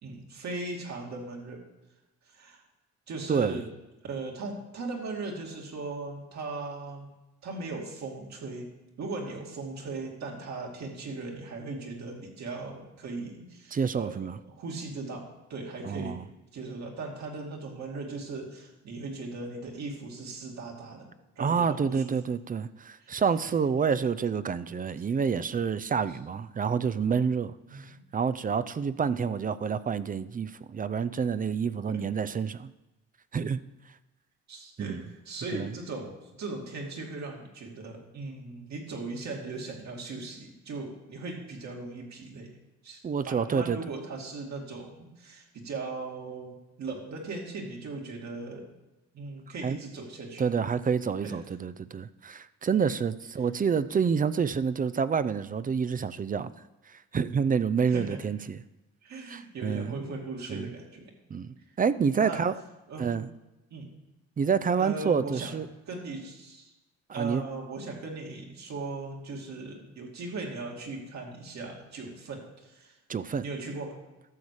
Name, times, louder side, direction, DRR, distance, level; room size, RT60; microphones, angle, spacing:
voice 1, 0.0-1.6 2.2-2.6 3.1-3.7 4.0-7.1 7.4-8.7 9.0-14.2 14.5-16.2 16.5-21.1 21.4-22.1 23.0-23.2 26.1-26.2 27.7-28.0 31.9-32.1 34.5-42.5 42.8-48.7 49.1-50.4 51.2-51.4 57.9-58.2 59.0-61.1 61.6-61.7 62.2-62.4 62.9-63.3 63.7-63.9 64.8-65.5 65.9-66.7 67.1-73.0 73.4-74.0, right 3 dB, 65° right, 0 dB, 2.5 m, -38 dB
voice 2, 3.3-3.6 13.7-14.4 15.8-16.2 21.4-32.7 33.3-33.6 34.8-35.0 35.5-35.7 43.0-43.8 49.6-49.8 50.4-56.5 56.9-58.6 59.3-60.0 60.5-60.7 61.3-62.5 63.0-63.3 64.4-65.7 67.1-67.4 73.1-73.4, right 6 dB, 30° right, 15 dB, 0.4 m, -28 dB
12.0 x 7.2 x 4.8 m, 1.0 s
cardioid pair, 90°, 30 cm